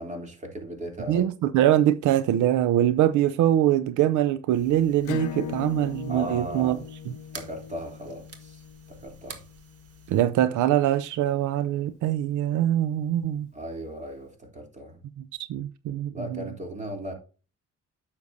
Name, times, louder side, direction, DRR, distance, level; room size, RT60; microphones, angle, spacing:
voice 1, 0.0-1.2 6.1-6.8 7.3-8.6 8.9-9.4 13.5-15.0 16.1-17.1, right 1 dB, 25° right, 3.0 m, -37 dB
voice 2, 1.1-6.8 10.1-13.5 15.5-16.5, right 12 dB, 80° right, 0.5 m, -23 dB
sound 1, 4.5-10.2, right 3 dB, 55° right, 1.5 m, -49 dB
Acoustic guitar / Strum, 5.0-10.3, left 8 dB, 85° left, 0.8 m, -39 dB
9.5 x 6.9 x 2.7 m
cardioid pair, 90°, 30 cm